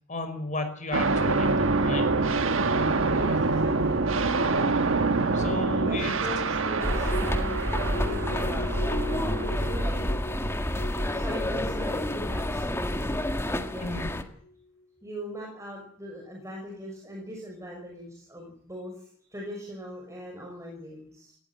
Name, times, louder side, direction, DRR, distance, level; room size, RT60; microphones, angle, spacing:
voice 1, 0.1-2.1 5.3-6.1 13.8-14.1, left 2 dB, 35° left, 7 dB, 5.4 m, -33 dB
sound 1, 0.9-10.0, right 3 dB, 65° right, 1.4 m, -26 dB
voice 2, 2.7-14.0 15.0-21.3, equal, 15° right, -1 dB, 6.1 m, -41 dB
sound 2, 6.8-14.2, left 1 dB, 10° left, 1.7 m, -29 dB
sound 3, 7.1-14.5 14.8-14.9, left 1 dB, 85° left, 7.9 m, -40 dB
18.5 x 17.0 x 9.3 m, 0.62 s
head